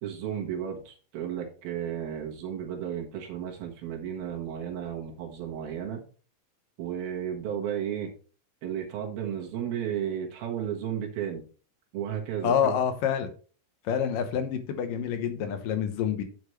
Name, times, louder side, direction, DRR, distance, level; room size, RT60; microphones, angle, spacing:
voice 1, 0.0-6.0 6.8-8.1 8.6-11.4 11.9-12.7, right 9 dB, 85° right, 1 dB, 3.4 m, -33 dB
voice 2, 12.4-13.3 13.8-16.2, left 8 dB, 75° left, 8 dB, 2.5 m, -27 dB
9.4 x 7.1 x 3.1 m, 0.39 s
omnidirectional pair, 4.2 m